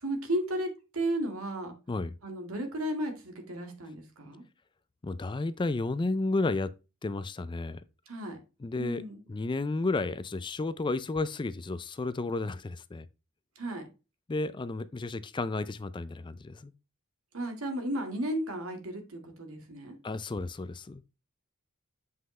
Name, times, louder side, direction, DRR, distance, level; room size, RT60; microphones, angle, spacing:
voice 1, 0.0-1.7 2.2-4.4 8.1-8.4 8.8-9.2 13.6-13.8 17.3-20.0, right 1 dB, 85° right, 1.9 m, -34 dB
voice 2, 5.0-6.7 7.0-7.8 8.6-9.0 9.3-13.1 14.3-16.7 20.0-21.0, left 3 dB, 25° left, 0.4 m, -32 dB
7.6 x 5.6 x 3.2 m
head